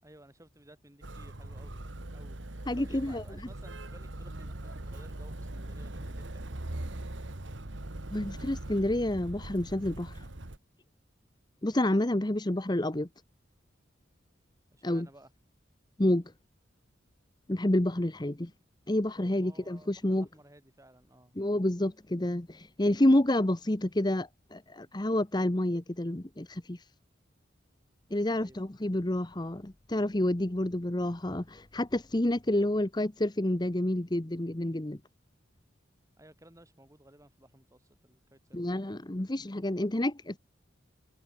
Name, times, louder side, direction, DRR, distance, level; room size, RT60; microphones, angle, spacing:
voice 1, 0.0-1.8 2.1-6.6 14.7-15.3 19.3-21.3 28.3-28.7 36.2-39.2, right 1 dB, 15° right, 5.7 m, -57 dB
Motor vehicle (road), 1.0-10.6, right 1 dB, 70° right, 1.8 m, -41 dB
voice 2, 2.7-3.2 8.1-10.3 11.6-13.1 14.8-15.1 16.0-16.2 17.5-18.5 18.9-20.3 21.4-26.8 28.1-35.0 38.5-40.4, left 1 dB, 20° left, 1.0 m, -29 dB
head